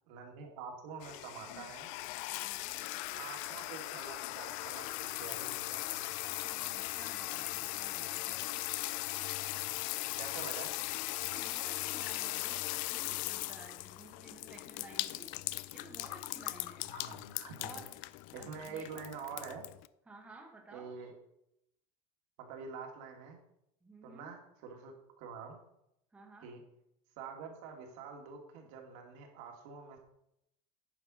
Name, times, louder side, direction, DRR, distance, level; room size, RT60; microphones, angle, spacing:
voice 1, 0.1-1.9 3.1-6.2 9.6-9.7 10.2-10.7 16.9-17.8 18.3-19.6 20.7-21.1 22.4-23.4 24.0-25.6 26.4-26.6 27.2-30.0, right 5 dB, 65° right, 2 dB, 2.2 m, -46 dB
sound 1, 1.0-19.9, left 19 dB, 50° left, 0.4 m, -39 dB
voice 2, 2.3-2.8 6.2-8.5 11.2-15.3 15.7-16.9 17.6-17.9 18.3-18.9 20.1-20.9 23.8-24.3 26.1-26.5, right 2 dB, 5° right, 0 dB, 1.1 m, -54 dB
9.3 x 5.6 x 6.2 m, 0.80 s
cardioid pair, 180°, 18 cm